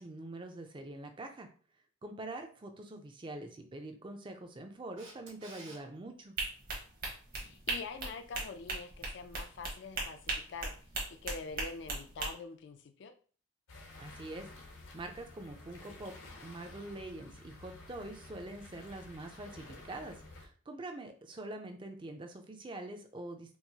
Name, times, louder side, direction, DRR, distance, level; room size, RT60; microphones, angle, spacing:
voice 1, 0.0-1.5 2.0-6.3 14.0-14.5 14.9-16.1 16.4-23.6, right 2 dB, 25° right, 5 dB, 0.4 m, -44 dB
Camera, 5.0-5.8 12.5-12.6, right 2 dB, 85° right, 1.2 m, -51 dB
sound 1, 6.4-12.3, right 3 dB, 45° right, 1.0 m, -38 dB
voice 2, 7.3-10.8 11.2-13.1, left 4 dB, 60° left, 7 dB, 0.3 m, -45 dB
sound 2, 13.7-20.5, left 2 dB, 75° left, 0.7 m, -52 dB
4.5 x 2.0 x 2.7 m, 0.41 s
head